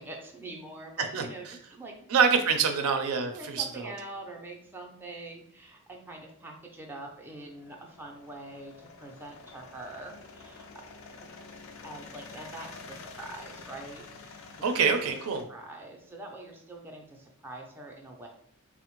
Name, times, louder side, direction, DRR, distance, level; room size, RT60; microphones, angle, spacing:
voice 1, 0.0-2.1 2.7-2.8 3.3-10.6 11.2-11.3 11.8-14.4 15.5-18.3, right 2 dB, 10° right, 0 dB, 0.4 m, -44 dB
voice 2, 2.1-3.9 14.6-15.4, right 5 dB, 90° right, 6 dB, 0.4 m, -25 dB
sound 1, 6.4-15.4, left 4 dB, 65° left, 0.4 m, -48 dB
3.4 x 2.0 x 2.9 m, 0.65 s
head